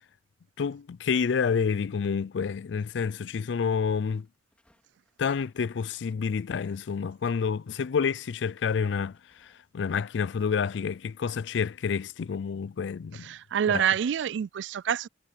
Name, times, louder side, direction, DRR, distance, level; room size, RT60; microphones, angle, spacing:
voice 1, 0.6-4.3 5.2-13.3 13.7-13.8, left 6 dB, 75° left, 0.4 m, -29 dB
sound 1, 3.8-6.8 7.1-10.1, left 1 dB, 5° left, 4.1 m, -68 dB
voice 2, 13.2-15.1, right 8 dB, 75° right, 0.3 m, -27 dB
head